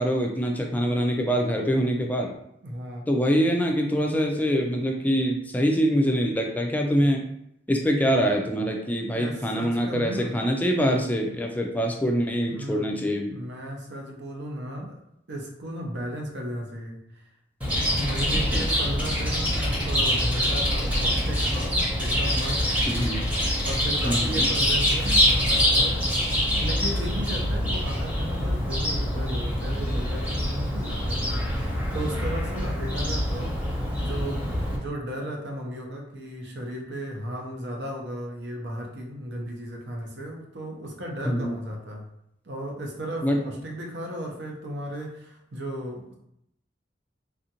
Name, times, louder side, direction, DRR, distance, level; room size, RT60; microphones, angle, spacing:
voice 1, 0.0-2.3 3.1-7.3 7.7-13.3 18.5-18.6 22.9-23.2 24.0-24.5 41.3-41.6 43.2-43.4, equal, 10° left, 1 dB, 0.3 m, -24 dB
voice 2, 2.6-3.1 9.1-10.4 12.5-14.9 15.3-17.2 17.7-22.6 23.6-26.0 26.4-42.1 42.4-46.1, equal, 75° right, 0 dB, 0.7 m, -35 dB
Chirp tweet, 17.6-34.8, equal, 10° right, 0.8 m, -25 dB
3.4 x 2.5 x 2.8 m, 0.77 s
head